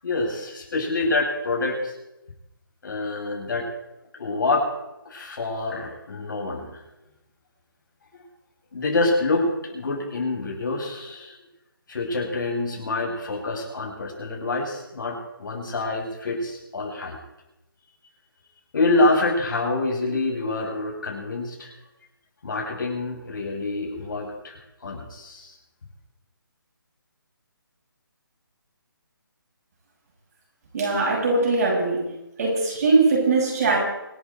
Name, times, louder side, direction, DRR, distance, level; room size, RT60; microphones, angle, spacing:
voice 1, 0.0-1.9 2.8-3.7 4.1-4.7 5.1-6.8 8.7-11.4 11.9-17.2 18.7-21.7 22.4-25.5, left 2 dB, 60° left, 0 dB, 7.0 m, -26 dB
voice 2, 30.7-32.1 32.4-33.8, right 3 dB, 45° right, -1 dB, 7.1 m, -21 dB
25.5 x 11.5 x 4.7 m, 0.93 s
figure-of-eight pair, 155°, 12 cm